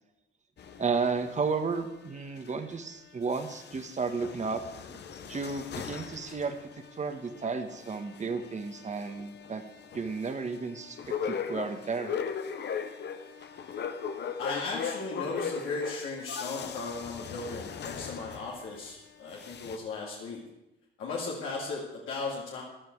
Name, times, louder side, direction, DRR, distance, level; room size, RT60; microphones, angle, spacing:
sound 1, 0.6-2.9 3.2-18.9 19.3-19.8, left 7 dB, 60° left, 1.1 m, -39 dB
voice 1, 0.8-4.6 4.9-5.0 5.3-6.6 7.0-9.6 9.9-12.1, right 4 dB, 35° right, 7 dB, 1.5 m, -33 dB
voice 2, 14.4-20.4 21.0-22.6, left 3 dB, 85° left, -4 dB, 2.7 m, -36 dB
14.0 x 11.0 x 4.8 m, 0.92 s
cardioid pair, 90°, 20 cm